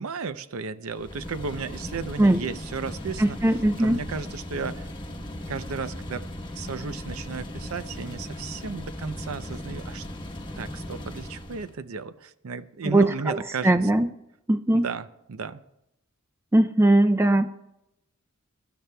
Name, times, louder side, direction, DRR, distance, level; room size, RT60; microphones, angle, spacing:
voice 1, 0.0-3.4 3.8-4.9 5.2-6.3 6.5-10.1 10.5-13.8 14.7-15.6, right 5 dB, 80° right, 13 dB, 0.6 m, -34 dB
sound 1, 0.9-11.8, left 1 dB, 20° left, 1.1 m, -37 dB
voice 2, 3.2-4.0 12.9-13.4 13.6-14.1 14.5-14.9 16.5-17.5, right 1 dB, 10° right, 9 dB, 0.3 m, -20 dB
23.0 x 12.5 x 2.2 m, 0.87 s
head